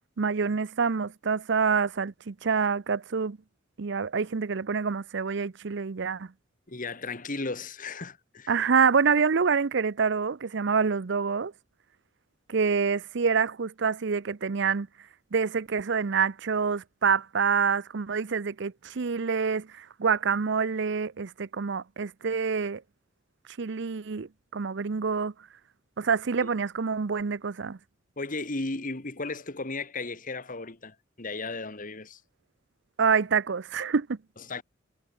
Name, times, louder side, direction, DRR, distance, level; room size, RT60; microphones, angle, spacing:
voice 1, 0.2-3.4 3.8-6.3 8.5-11.5 12.5-14.9 15.3-22.8 23.6-25.3 26.0-27.8 33.0-34.2, right 5 dB, 65° right, 0.6 m, -26 dB
voice 2, 6.7-8.5 28.2-32.2 34.5-34.6, left 3 dB, 45° left, 2.0 m, -35 dB
head